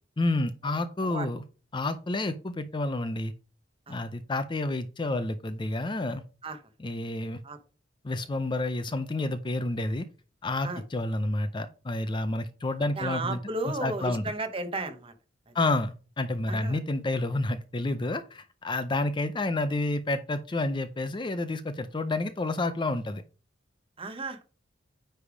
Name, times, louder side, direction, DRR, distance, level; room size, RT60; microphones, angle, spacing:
voice 1, 0.2-1.4 1.7-3.3 3.9-6.2 6.8-7.4 8.0-10.1 10.4-13.4 13.8-14.2 15.5-23.2, left 2 dB, 25° left, 11 dB, 0.5 m, -29 dB
voice 2, 13.0-15.1 15.5-15.6 16.5-16.8 24.0-24.4, right 2 dB, 30° right, 8 dB, 0.9 m, -34 dB
9.7 x 3.4 x 4.9 m, 0.35 s
head